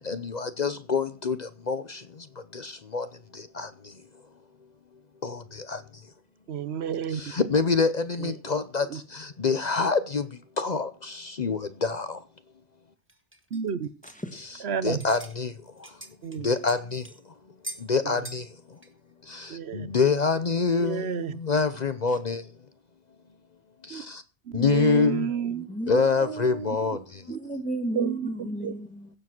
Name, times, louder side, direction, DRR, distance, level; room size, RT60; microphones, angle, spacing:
voice 1, 0.1-2.0 2.5-3.1 3.6-3.7 5.2-5.4 5.7-5.8 7.2-8.9 9.1-10.2 10.6-12.2 14.8-15.5 16.4-17.0 17.9-18.4 19.3-22.4 24.5-25.3 25.9-27.0, left 4 dB, 45° left, 0.8 m, -26 dB
voice 2, 6.5-7.2 8.2-8.4 8.9-9.0 13.5-13.9 14.6-15.0 16.2-16.5 18.0-18.3 19.5-19.9 20.8-21.4 23.9-24.0 24.5-25.7 27.3-27.4 27.9-28.7, right 7 dB, 85° right, 1.1 m, -30 dB
sound 1, 13.1-14.6 14.9-15.4 15.7-17.2 17.6-17.9 18.2-18.5 18.8-18.9 19.4-19.5, right 1 dB, 10° right, 1.9 m, -43 dB
voice 3, 14.0-14.4 22.1-22.2 25.5-29.1, right 1 dB, 5° left, 1.8 m, -35 dB
16.5 x 7.3 x 6.0 m
omnidirectional pair, 1.1 m